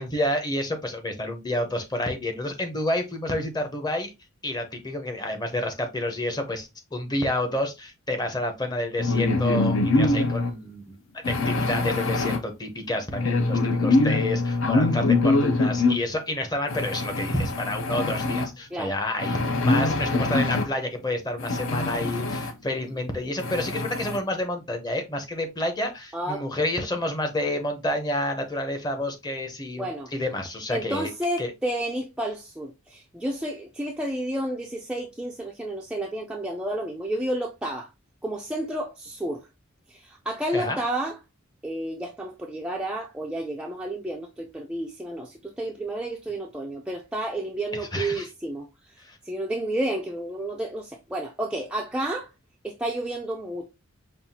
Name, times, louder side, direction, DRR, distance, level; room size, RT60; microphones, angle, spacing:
voice 1, 0.0-4.1 4.4-11.0 11.3-31.1 31.4-31.5 40.5-40.8 47.7-48.3 49.0-49.2, left 1 dB, 20° left, 0.7 m, -29 dB
sound 1, 9.0-10.5 11.2-12.4 13.1-16.0 16.7-18.5 19.2-20.7 21.4-22.5 23.0-23.1 23.4-24.2, left 2 dB, 65° left, 0.6 m, -24 dB
voice 2, 26.1-26.7 29.7-30.1 30.7-37.9 38.2-39.5 39.9-41.2 41.6-52.3 52.6-53.7, right 1 dB, 5° right, 0.3 m, -31 dB
5.4 x 2.3 x 2.7 m
head